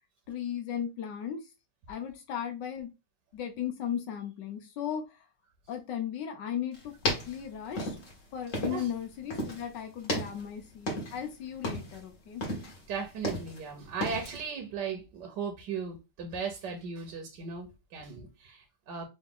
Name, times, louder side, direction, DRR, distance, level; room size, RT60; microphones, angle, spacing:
voice 1, 0.3-1.4 1.9-2.9 3.3-5.3 5.7-8.0 8.3-12.4, left 9 dB, 65° left, 1.3 m, -36 dB
sound 1, 6.7-9.0 9.3-9.7 10.0-11.3 11.5-12.0 12.4-13.7 14.0-14.4, left 1 dB, 40° left, 1.4 m, -34 dB
voice 2, 12.9-19.0, right 5 dB, 60° right, 1.3 m, -37 dB
3.9 x 2.7 x 3.6 m
omnidirectional pair, 2.4 m